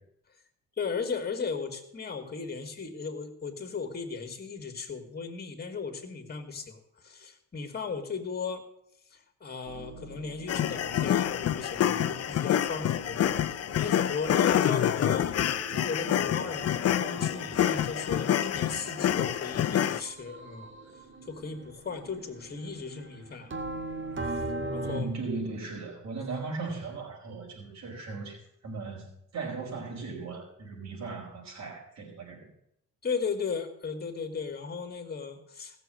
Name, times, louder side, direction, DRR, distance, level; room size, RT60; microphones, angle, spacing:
voice 1, 0.8-6.8 7.0-8.6 9.1-13.2 13.7-20.7 21.3-23.8 24.3-24.4 24.7-25.1 33.0-35.8, left 5 dB, 30° left, 6 dB, 2.3 m, -36 dB
sound 1, 9.7-25.0, right 2 dB, 40° right, 1.8 m, -42 dB
sound 2, 10.5-20.0, left 10 dB, 55° left, 0.7 m, -27 dB
voice 2, 24.8-29.1 29.3-32.5, right 3 dB, 60° right, -1 dB, 4.9 m, -37 dB
16.0 x 6.9 x 7.7 m, 0.75 s
cardioid pair, 90°, 30 cm